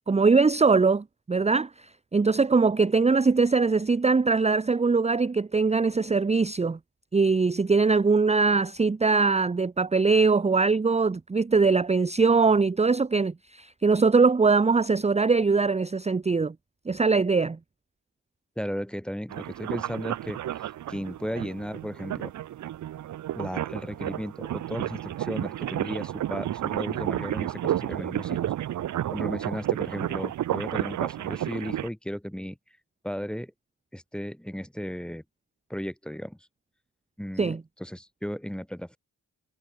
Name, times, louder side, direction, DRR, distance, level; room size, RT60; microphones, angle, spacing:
voice 1, 0.1-6.8 7.1-16.5 16.9-17.6 37.4-37.6, right 4 dB, 20° right, 0.6 m, -22 dB
voice 2, 18.6-22.3 23.3-28.5 29.1-32.6 33.0-33.5 33.9-35.2 35.7-36.4 37.2-39.0, equal, 5° left, 1.2 m, -35 dB
sound 1, 19.3-31.9, right 12 dB, 60° right, 0.5 m, -31 dB
cardioid pair, 55°, 34 cm